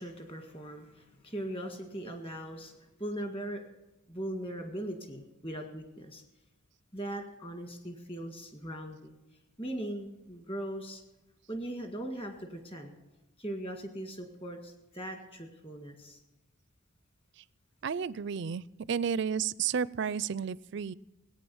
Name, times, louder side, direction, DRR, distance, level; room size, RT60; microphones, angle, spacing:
voice 1, 0.0-3.6 4.1-6.2 6.9-9.2 9.6-11.0 11.5-13.0 13.4-16.2, right 1 dB, 25° left, 5 dB, 1.8 m, -39 dB
voice 2, 17.8-20.9, right 7 dB, 55° right, 21 dB, 0.4 m, -32 dB
17.5 x 9.0 x 7.1 m, 1.0 s
head